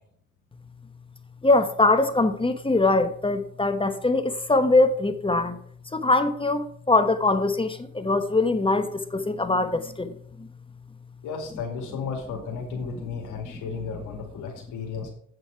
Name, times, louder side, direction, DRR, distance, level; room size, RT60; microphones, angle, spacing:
voice 1, 1.4-5.6 5.9-10.1 10.4-10.5 13.5-13.7, left 2 dB, 15° left, 1.1 m, -22 dB
voice 2, 11.2-15.1, left 5 dB, 70° left, 2.5 m, -34 dB
8.4 x 7.9 x 4.7 m
supercardioid pair, 80°, 32 cm